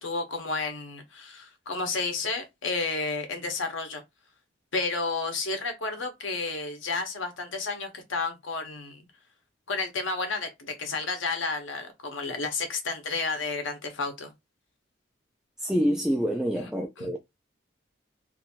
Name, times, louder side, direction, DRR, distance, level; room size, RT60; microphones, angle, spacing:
voice 1, 0.0-4.0 4.7-9.0 9.7-14.3 17.0-17.1, left 3 dB, 90° left, 1.0 m, -31 dB
voice 2, 15.6-17.2, equal, 5° right, 0.3 m, -26 dB
2.7 x 2.6 x 2.8 m
head